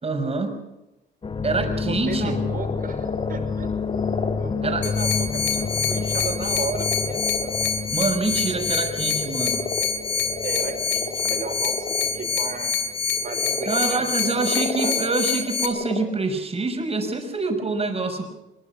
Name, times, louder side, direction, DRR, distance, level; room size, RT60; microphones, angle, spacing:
voice 1, 0.0-0.6 1.4-2.4 4.6-4.8 7.9-9.6 13.7-18.3, right 3 dB, 30° right, 5 dB, 5.9 m, -26 dB
sound 1, 1.2-13.3 13.6-14.1, left 5 dB, 25° left, 0.9 m, -30 dB
voice 2, 1.6-3.7 4.4-7.5 10.4-12.7 13.2-15.0, right 5 dB, 45° right, 5 dB, 5.7 m, -35 dB
sound 2, 2.1-12.5 13.0-16.0, left 4 dB, 45° left, 3.9 m, -33 dB
sound 3, 4.8-15.7, left 6 dB, 70° left, 3.3 m, -26 dB
23.5 x 22.0 x 6.0 m, 0.93 s
cardioid pair, 90°, 20 cm